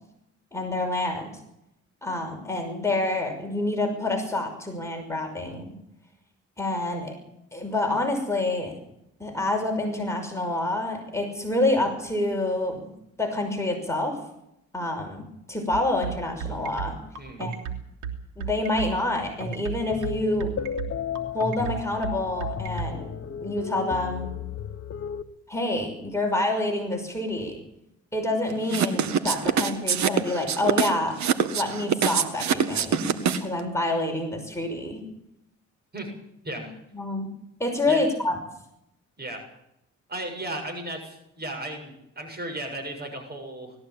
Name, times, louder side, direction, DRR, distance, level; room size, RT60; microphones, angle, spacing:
voice 1, 0.5-1.3 2.0-5.7 6.6-7.2 7.5-8.7 9.2-12.9 13.2-14.2 14.7-17.0 17.4-17.5 18.4-20.5 21.3-23.1 23.4-24.3 25.5-27.6 28.1-31.2 31.5-33.1 33.3-35.0 36.6-36.7 36.9-37.3 37.6-38.4, left 2 dB, 10° left, 2 dB, 5.8 m, -27 dB
sound 1, 15.7-22.9, right 8 dB, 85° right, 3.2 m, -33 dB
sound 2, 19.9-25.2, left 8 dB, 50° left, 1.3 m, -33 dB
sound 3, 28.7-33.6, right 8 dB, 65° right, 1.9 m, -24 dB
voice 2, 40.1-43.7, right 1 dB, 35° right, 4 dB, 7.4 m, -35 dB
20.0 x 15.0 x 8.9 m, 0.79 s
cardioid pair, 90°, 30 cm